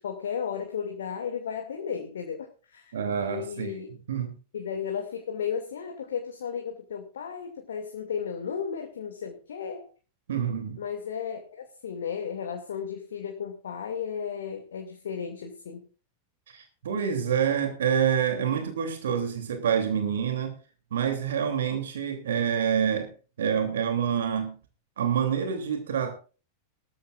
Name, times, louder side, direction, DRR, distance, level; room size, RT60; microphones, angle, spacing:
voice 1, 0.0-2.9 3.2-3.9 4.5-9.9 10.8-15.8, left 7 dB, 65° left, 4 dB, 2.3 m, -34 dB
voice 2, 2.9-3.8 4.1-4.4 10.3-10.8 16.5-20.5 20.9-23.1 23.4-24.5 25.0-26.2, right 8 dB, 65° right, 6 dB, 3.0 m, -27 dB
19.5 x 14.0 x 2.5 m, 0.35 s
figure-of-eight pair, 90°, 0 cm